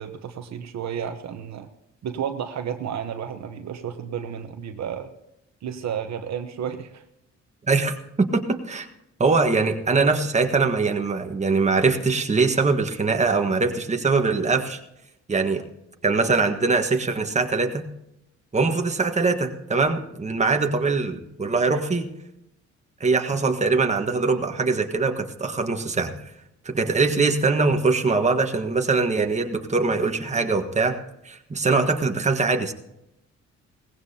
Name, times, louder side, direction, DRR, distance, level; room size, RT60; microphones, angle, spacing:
voice 1, 0.0-1.7 2.0-5.1 5.6-7.0, right 8 dB, 60° right, 7 dB, 1.1 m, -32 dB
voice 2, 7.7-8.9 9.2-14.8 15.3-15.6 16.0-17.8 18.5-22.1 23.0-26.1 26.7-31.0 31.2-32.7, right 4 dB, 25° right, 4 dB, 1.5 m, -22 dB
18.5 x 16.0 x 2.8 m, 0.84 s
cardioid pair, 90°, 30 cm